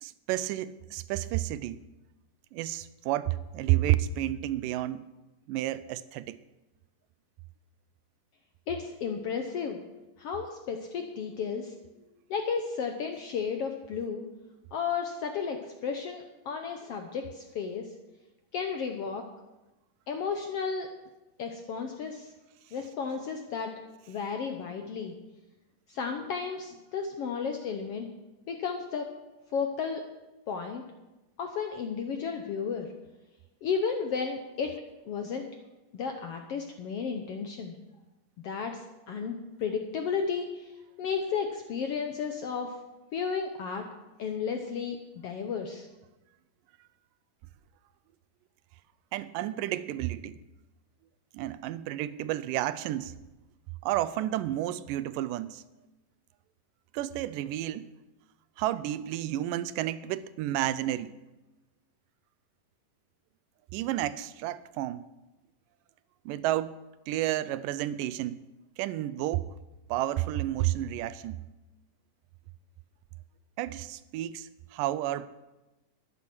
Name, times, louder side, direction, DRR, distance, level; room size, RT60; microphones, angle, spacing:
voice 1, 0.0-1.8 2.5-5.1 5.5-6.4 49.1-50.4 51.3-53.1 53.8-55.6 56.9-57.9 58.6-61.1 63.7-65.1 66.3-66.8 67.1-68.4 68.8-69.5 69.9-71.4 73.6-75.3, right 14 dB, 85° right, 2.2 m, -31 dB
voice 2, 8.7-9.8 10.2-11.7 12.3-14.3 14.7-17.9 18.5-19.2 20.1-20.9 21.4-22.3 22.7-23.7 24.1-25.1 25.9-28.1 28.5-29.1 29.5-30.0 30.5-30.8 31.4-32.9 33.6-34.7 35.1-35.5 35.9-37.7 38.4-38.8 39.1-40.7 41.0-42.7 43.1-43.8 44.2-45.0 45.2-45.9, left 6 dB, 75° left, 1.4 m, -33 dB
13.0 x 10.5 x 6.1 m
omnidirectional pair, 3.8 m